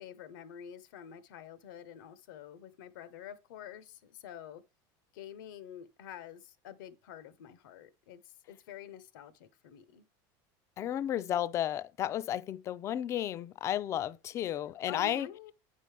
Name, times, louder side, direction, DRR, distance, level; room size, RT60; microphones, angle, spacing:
voice 1, 0.0-4.6 5.1-10.0 14.9-15.5, left 9 dB, 90° left, 1.0 m, -48 dB
voice 2, 10.8-15.3, left 11 dB, 30° left, 0.3 m, -33 dB
9.1 x 5.4 x 3.3 m
cardioid pair, 155°, 10 cm